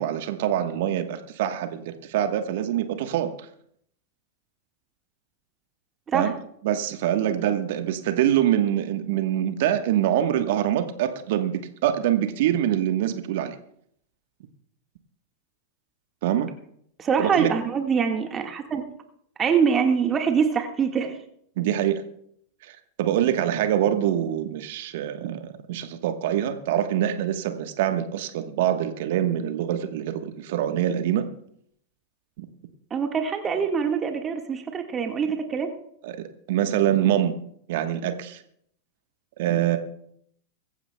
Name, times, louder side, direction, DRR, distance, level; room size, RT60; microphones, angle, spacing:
voice 1, 0.0-3.5 6.1-6.3 6.6-13.6 16.2-16.5 17.2-17.5 21.6-22.0 22.6-22.7 23.0-31.3 32.4-32.5 36.0-36.2 36.5-37.4 37.7-38.4 39.4-39.8, right 11 dB, 60° right, 8 dB, 1.2 m, -24 dB
voice 2, 17.0-18.8 19.4-21.2 32.9-35.7, right 6 dB, 25° right, 4 dB, 1.7 m, -24 dB
24.5 x 14.5 x 2.3 m, 0.68 s
figure-of-eight pair, 95°, 0 cm